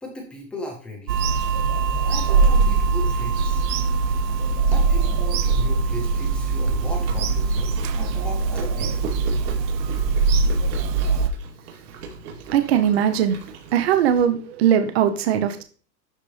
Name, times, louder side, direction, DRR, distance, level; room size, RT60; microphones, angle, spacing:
voice 1, 0.0-1.2 2.0-3.6 4.7-9.1, equal, ahead, 0.6 m, -37 dB
Bird vocalization bird call bird song / Telephone, 1.1-11.3, right 4 dB, 85° right, 0.9 m, -21 dB
Chewing mastication, 7.0-14.2, right 4 dB, 65° right, 3.0 m, -40 dB
voice 2, 12.5-13.4 13.7-15.6, right 9 dB, 40° right, 0.8 m, -20 dB
12.0 x 4.1 x 3.3 m
supercardioid pair, 165°, 49 cm